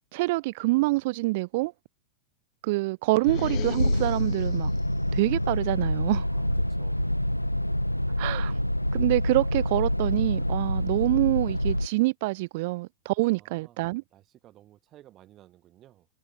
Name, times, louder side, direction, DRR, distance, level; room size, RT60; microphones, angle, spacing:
voice 1, 0.1-1.7 2.6-4.7 5.1-6.3 8.2-8.5 8.9-14.0, right 22 dB, 50° right, 0.3 m, -26 dB
sound 1, 3.2-4.8, left 20 dB, 40° left, 1.3 m, -40 dB
Car on Highway Inside Fiat Punto, 3.3-11.9, left 1 dB, 90° left, 0.6 m, -27 dB
voice 2, 6.4-7.1 13.3-16.1, right 13 dB, 35° right, 3.2 m, -55 dB
figure-of-eight pair, 90°, 0 cm